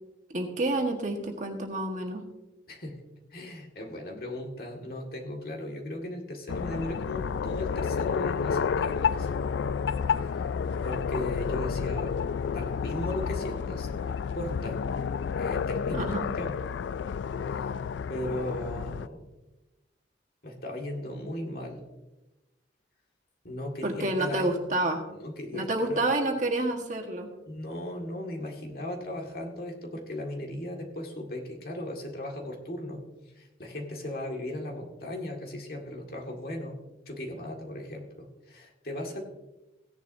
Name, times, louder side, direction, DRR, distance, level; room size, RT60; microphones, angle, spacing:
voice 1, 0.3-2.2 15.9-16.3 23.8-25.0 25.5-27.3, right 2 dB, 40° right, 2 dB, 1.5 m, -29 dB
voice 2, 2.7-3.0 3.3-9.3 10.2-10.4 10.8-12.2 12.5-14.8 15.4-16.6 17.4-17.8 18.1-19.3 20.4-21.8 23.4-24.6 25.1-26.1 27.5-33.0 33.4-39.2, left 1 dB, 55° left, 0 dB, 2.0 m, -37 dB
sound 1, 6.5-19.1, left 6 dB, 75° left, 0.3 m, -30 dB
17.0 x 10.5 x 2.7 m, 1.0 s
head